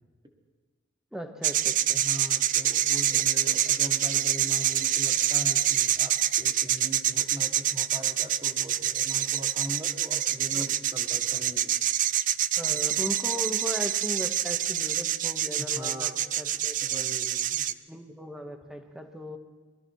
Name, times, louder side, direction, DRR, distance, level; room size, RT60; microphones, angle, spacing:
voice 1, 1.1-2.0 3.1-3.6 10.5-10.7 12.6-16.9 17.9-19.4, equal, 5° right, 5 dB, 1.1 m, -38 dB
sound 1, 1.4-17.7, right 11 dB, 45° right, 0.4 m, -26 dB
voice 2, 1.9-11.7 15.5-16.2 16.8-17.7, equal, 25° right, 3 dB, 1.6 m, -40 dB
21.0 x 13.0 x 4.6 m, 1.4 s
head